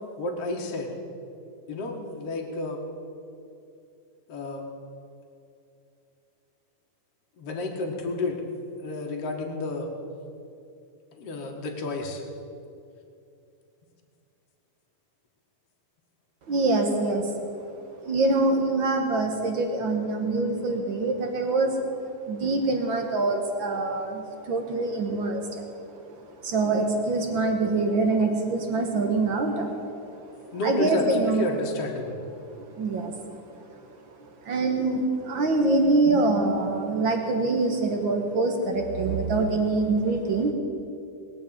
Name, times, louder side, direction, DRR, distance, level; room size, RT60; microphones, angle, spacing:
voice 1, 0.2-0.9 1.7-2.8 4.3-4.7 7.4-8.4 8.8-9.9 11.1-12.2 30.5-32.2, left 2 dB, 50° left, 0 dB, 2.5 m, -30 dB
voice 2, 16.5-17.3 18.0-22.0 22.3-25.6 26.0-30.2 30.6-31.5 32.6-33.7 34.2-40.5, right 3 dB, 60° right, 4 dB, 1.3 m, -25 dB
19.5 x 7.0 x 9.0 m, 2.5 s
omnidirectional pair, 3.8 m